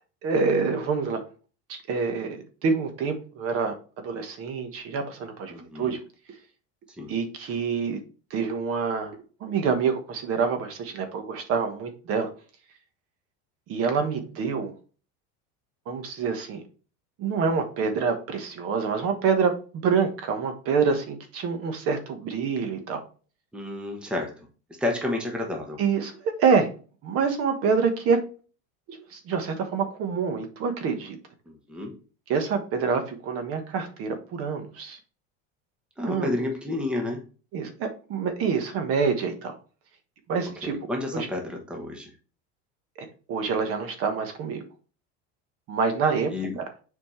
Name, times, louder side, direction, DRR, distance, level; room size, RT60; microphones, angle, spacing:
voice 1, 0.2-1.2 1.7-3.7 4.0-6.0 7.1-8.0 8.3-12.3 13.7-14.7 15.9-16.6 17.2-23.0 25.8-26.7 27.0-28.2 28.9-31.2 32.3-35.0 36.1-36.3 37.5-39.6 40.3-40.8 41.1-41.3 43.0-44.6 45.7-46.6, right 5 dB, 40° right, 7 dB, 1.3 m, -26 dB
voice 2, 5.5-6.0 7.0-7.1 23.5-24.3 24.8-25.8 31.5-32.0 36.0-37.2 40.6-42.1 46.3-46.6, left 2 dB, 5° right, 1 dB, 1.0 m, -30 dB
7.2 x 4.3 x 3.2 m, 0.36 s
cardioid pair, 160°, 35 cm